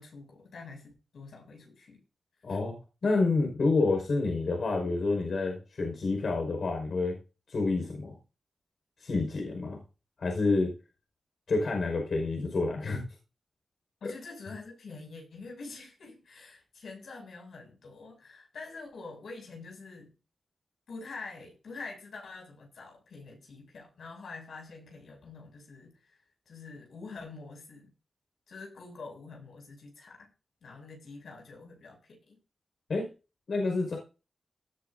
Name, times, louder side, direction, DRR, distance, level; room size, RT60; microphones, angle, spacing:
voice 1, 0.0-2.0 2.5-2.6 14.0-20.1 20.9-26.0 26.4-27.9 28.5-30.3 30.6-32.4, left 3 dB, 90° left, 1 dB, 6.6 m, -46 dB
voice 2, 2.4-7.2 7.5-8.2 9.0-9.8 10.2-10.7 11.5-13.0 14.0-14.1 32.9-33.1 33.5-34.0, left 3 dB, 70° left, 2 dB, 5.2 m, -28 dB
18.5 x 11.5 x 2.7 m, 0.32 s
cardioid pair, 60°, 0 cm